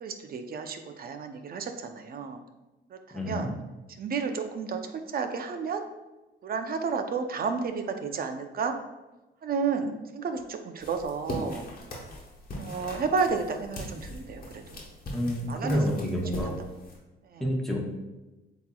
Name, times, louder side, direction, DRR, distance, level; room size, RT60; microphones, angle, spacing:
voice 1, 0.0-2.4 2.9-3.5 3.9-5.8 6.4-8.7 9.4-11.7 12.6-14.8 15.5-15.8 16.1-16.2 17.2-17.5, right 5 dB, 50° right, 7 dB, 0.6 m, -32 dB
voice 2, 3.1-3.5 15.1-16.5 17.4-17.8, equal, ahead, -2 dB, 1.1 m, -28 dB
sound 1, 10.8-17.0, left 1 dB, 50° left, 1.2 m, -40 dB
7.8 x 2.9 x 2.3 m, 1.1 s
cardioid pair, 90°, 20 cm